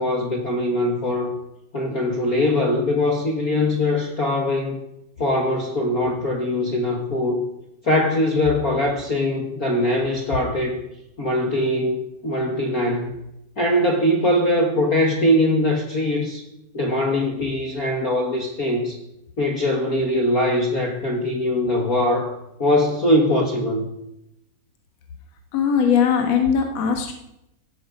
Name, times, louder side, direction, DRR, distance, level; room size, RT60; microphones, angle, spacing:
voice 1, 0.0-1.4 1.7-4.8 5.2-7.4 7.8-10.8 11.2-13.2 13.6-16.4 16.7-19.0 19.4-23.9, left 1 dB, 40° left, 0 dB, 1.4 m, -22 dB
voice 2, 25.5-27.1, left 7 dB, 55° left, 3 dB, 2.5 m, -19 dB
17.0 x 12.5 x 5.2 m, 0.85 s
omnidirectional pair, 3.8 m